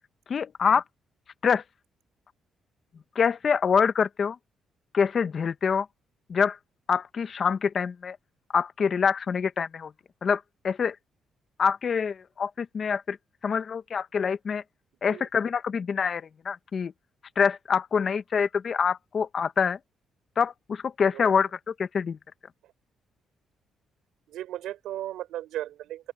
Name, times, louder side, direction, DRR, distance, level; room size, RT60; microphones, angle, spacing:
voice 1, 0.3-0.8 1.4-1.6 3.1-4.4 4.9-5.9 6.3-6.6 6.9-8.2 8.5-9.9 10.2-11.0 11.6-13.2 13.4-14.6 15.0-16.9 17.4-19.8 20.4-21.5 21.8-22.2, left 6 dB, 50° left, 1.1 m, -25 dB
voice 2, 24.3-26.1, right 13 dB, 85° right, 6.9 m, -36 dB
open air
cardioid pair, 90°, 0 cm